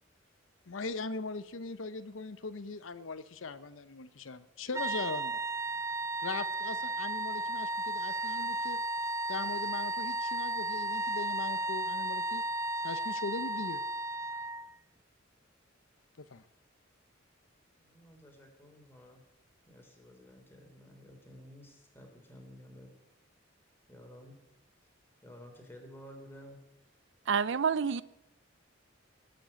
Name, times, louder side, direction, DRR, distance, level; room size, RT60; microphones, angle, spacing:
voice 1, 0.7-5.4 6.2-8.8 9.3-12.4 12.8-13.8 16.2-16.4, left 3 dB, 80° left, 0.8 m, -40 dB
sound 1, 4.7-14.7, right 1 dB, 15° right, 0.5 m, -34 dB
voice 2, 17.8-19.2 19.7-22.9 23.9-24.3 25.2-26.6, equal, 10° left, 3.4 m, -52 dB
voice 3, 27.3-28.0, right 6 dB, 65° right, 0.5 m, -28 dB
17.5 x 7.8 x 8.6 m
head